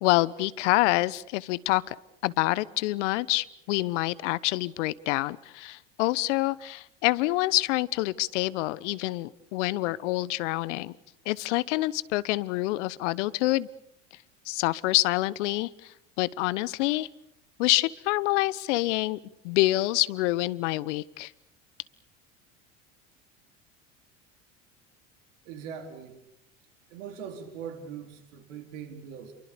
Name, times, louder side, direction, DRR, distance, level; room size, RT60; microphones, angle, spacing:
voice 1, 0.0-2.0 2.2-10.9 11.2-13.7 14.5-17.1 17.6-19.2 19.4-21.3, left 19 dB, 70° left, 21 dB, 1.1 m, -27 dB
voice 2, 25.5-26.2 26.9-29.3, right 7 dB, 75° right, 7 dB, 4.2 m, -41 dB
29.5 x 23.5 x 6.9 m, 0.77 s
hypercardioid pair, 75°, 38 cm